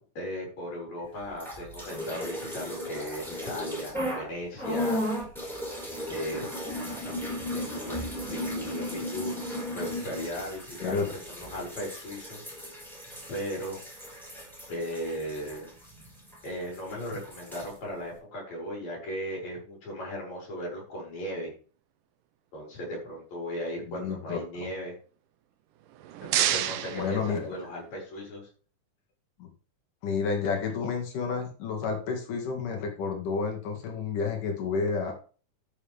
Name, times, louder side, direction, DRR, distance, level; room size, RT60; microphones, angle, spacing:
voice 1, 0.0-5.0 6.1-9.4 9.7-12.4 13.3-13.8 14.7-15.7 16.4-21.5 22.5-25.0 26.2-28.5, equal, 60° left, -2 dB, 6.5 m, -37 dB
sound 1, 1.3-4.3 4.6-16.5 16.7-17.7, left 1 dB, ahead, 5.2 m, -35 dB
voice 2, 23.9-24.4 26.9-27.5 29.4-29.5 30.0-35.1, left 5 dB, 80° left, 2 dB, 3.7 m, -30 dB
sound 2, 25.8-28.0, right 12 dB, 85° right, 2.4 m, -30 dB
12.5 x 7.4 x 3.5 m, 0.38 s
omnidirectional pair, 3.6 m